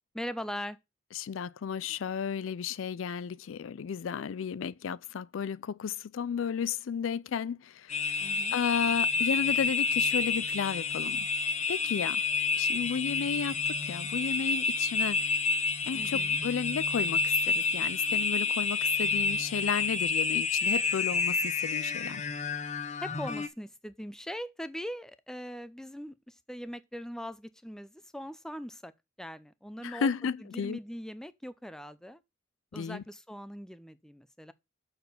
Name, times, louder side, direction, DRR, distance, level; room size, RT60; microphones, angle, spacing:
voice 1, 0.1-0.8 8.2-8.6 15.9-16.4 23.0-28.9 29.2-32.2 32.7-34.5, equal, 5° left, 0.5 m, -41 dB
voice 2, 1.2-8.0 8.5-11.2 11.7-12.2 12.6-15.2 15.9-22.3 29.8-30.8 32.7-33.0, left 7 dB, 85° left, 0.4 m, -33 dB
sound 1, 7.9-23.5, left 4 dB, 35° left, 0.9 m, -29 dB
6.8 x 4.3 x 6.7 m
head